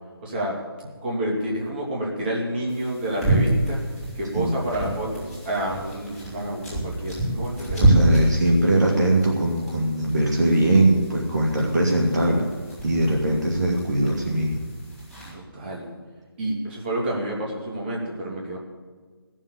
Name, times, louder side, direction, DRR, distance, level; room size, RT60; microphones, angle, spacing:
voice 1, 0.2-0.6 1.0-3.8 4.1-8.2 15.3-15.9 16.4-18.6, right 1 dB, 25° right, -3 dB, 2.6 m, -29 dB
sound 1, 2.7-15.3, right 1 dB, ahead, 4.9 m, -28 dB
voice 2, 7.8-12.5 12.8-14.6, right 1 dB, 45° right, -1 dB, 2.1 m, -21 dB
14.5 x 7.4 x 8.5 m, 1.5 s
figure-of-eight pair, 155°, 13 cm